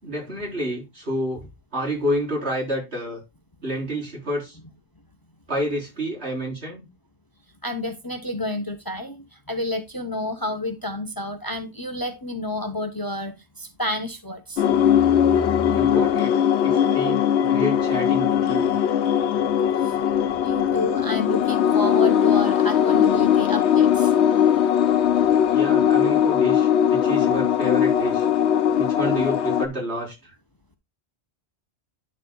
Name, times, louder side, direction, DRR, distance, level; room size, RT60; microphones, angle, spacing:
voice 1, 0.0-1.5 1.7-3.2 3.6-4.6 5.5-6.9 15.7-16.3 16.6-18.7 25.4-28.3 28.8-30.3, equal, 75° right, 4.5 m, -29 dB
voice 2, 7.6-14.6 15.2-15.3 15.6-15.7 19.8-20.0 20.4-24.1, left 1 dB, 20° left, 0.8 m, -30 dB
sound 1, 14.6-29.7, left 9 dB, 90° left, 1.0 m, -20 dB
9.6 x 6.6 x 2.3 m
omnidirectional pair, 1.1 m